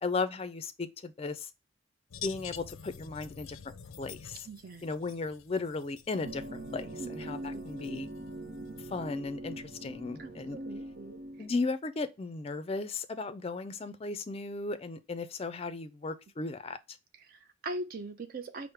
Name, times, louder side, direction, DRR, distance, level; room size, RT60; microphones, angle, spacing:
voice 1, 0.0-1.5 2.2-3.6 4.0-4.5 4.8-8.1 8.9-10.6 11.4-16.8, left 3 dB, 30° left, 0.4 m, -36 dB
sound 1, 2.1-9.1, left 8 dB, 90° left, 0.4 m, -48 dB
voice 2, 4.5-4.9 7.0-7.1 7.5-7.6 10.2-11.2 17.2-18.7, right 2 dB, 50° right, 0.5 m, -41 dB
sound 2, 6.2-11.5, right 1 dB, 85° right, 0.8 m, -42 dB
4.8 x 2.1 x 4.5 m
head